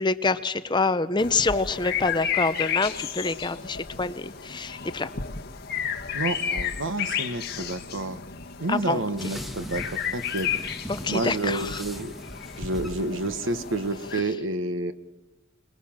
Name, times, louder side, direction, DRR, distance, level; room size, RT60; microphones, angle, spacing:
voice 1, 0.0-5.1 8.7-9.0 10.9-11.8, left 3 dB, 20° left, 12 dB, 0.7 m, -26 dB
sound 1, 1.2-14.2, left 8 dB, 50° left, 1.5 m, -33 dB
voice 2, 6.1-8.2 8.6-10.5 11.1-12.1 12.6-14.9, right 2 dB, 75° right, 12 dB, 1.2 m, -29 dB
sound 2, 9.2-14.3, equal, ahead, 1.5 m, -41 dB
25.5 x 20.5 x 7.4 m, 1.1 s
head